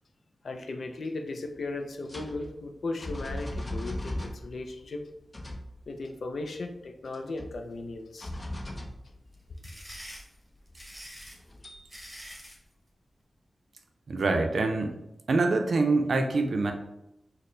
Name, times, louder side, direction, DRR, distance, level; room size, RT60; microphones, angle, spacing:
voice 1, 0.4-5.0 5.9-8.3, left 2 dB, 75° left, 5 dB, 0.4 m, -36 dB
sound 1, 1.5-1.6 2.1-4.8 5.2-5.9 6.5-6.6 7.1-7.9 8.2-9.4 10.7-10.8 11.3-12.1, left 1 dB, 40° left, 0.7 m, -38 dB
sound 2, 9.3-12.6, equal, 5° right, 1.1 m, -45 dB
voice 2, 14.1-15.0 15.3-16.7, right 3 dB, 75° right, 5 dB, 0.4 m, -25 dB
4.2 x 2.1 x 3.2 m, 0.86 s
cardioid pair, 40°, 0 cm